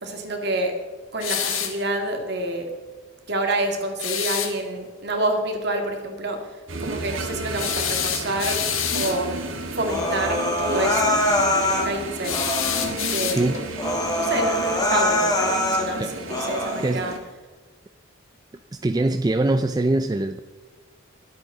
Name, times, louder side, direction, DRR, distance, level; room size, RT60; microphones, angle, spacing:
voice 1, 0.0-0.8 1.1-2.7 3.3-6.5 6.8-11.2 11.4-12.4 13.1-13.5 14.2-17.1, right 1 dB, 55° right, 3 dB, 2.3 m, -28 dB
sound 1, 1.2-1.8 4.0-4.5 7.6-9.2 12.2-13.7, left 9 dB, 80° left, 1.6 m, -27 dB
sound 2, 6.7-17.2, right 2 dB, 75° right, 1.7 m, -33 dB
Human voice, 9.8-11.9 12.3-12.9 13.4-13.5 13.8-15.9 16.3-16.9, left 1 dB, 20° left, 1.8 m, -23 dB
voice 2, 18.7-20.4, right 2 dB, 20° right, 9 dB, 0.3 m, -23 dB
21.5 x 8.3 x 4.0 m, 1.4 s
head